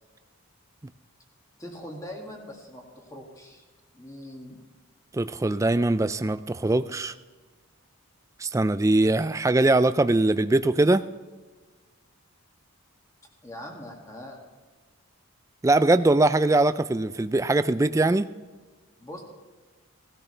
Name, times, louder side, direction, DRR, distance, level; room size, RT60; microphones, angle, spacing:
voice 1, 1.6-3.6 3.9-4.6 13.4-14.4 19.0-19.2, left 1 dB, 15° left, 0 dB, 2.1 m, -41 dB
voice 2, 5.1-7.1 8.4-11.0 15.6-18.3, right 2 dB, 15° right, 12 dB, 0.3 m, -22 dB
17.5 x 13.5 x 3.3 m, 1.3 s
head